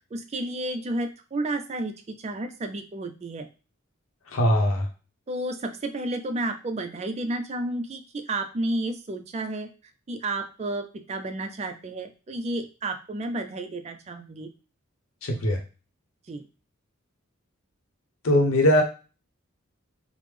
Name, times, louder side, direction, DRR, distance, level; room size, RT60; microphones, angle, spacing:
voice 1, 0.0-3.5 5.3-9.7 10.1-14.5 16.3-16.5, right 2 dB, 30° right, 7 dB, 0.3 m, -31 dB
voice 2, 4.3-4.9 15.2-15.6 18.2-18.8, left 1 dB, 80° left, 1 dB, 0.7 m, -20 dB
3.3 x 2.0 x 3.2 m, 0.34 s
head